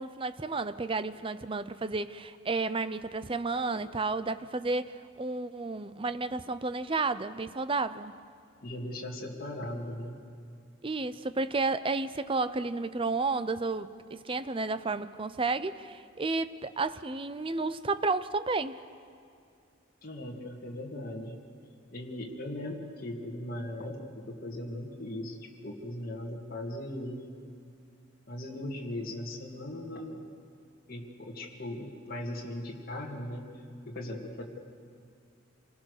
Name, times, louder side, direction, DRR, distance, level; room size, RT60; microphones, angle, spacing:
voice 1, 0.0-8.1 10.8-18.8, right 3 dB, 25° right, 13 dB, 0.6 m, -32 dB
voice 2, 8.6-10.2 20.0-21.4 21.9-25.4 25.6-27.3 28.3-30.3 30.9-33.5 33.9-34.4, left 1 dB, 45° left, -1 dB, 2.2 m, -38 dB
27.0 x 19.5 x 6.6 m, 2.4 s
head